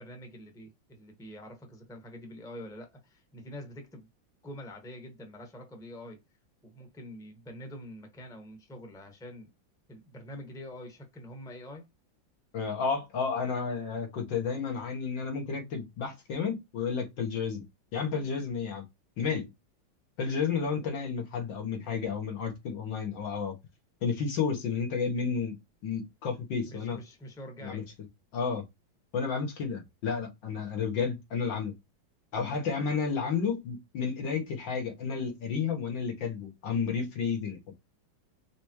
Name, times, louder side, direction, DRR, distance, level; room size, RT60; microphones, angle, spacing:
voice 1, 0.0-4.1 4.4-6.2 6.6-9.5 9.9-11.9 26.6-27.9, equal, ahead, 1.0 m, -45 dB
voice 2, 12.5-17.6 17.9-18.8 19.2-19.5 20.2-23.6 24.0-27.0 27.6-27.8 28.3-28.6 29.1-31.8 32.3-37.6, left 5 dB, 70° left, 2.0 m, -31 dB
5.0 x 3.4 x 3.1 m
omnidirectional pair, 2.2 m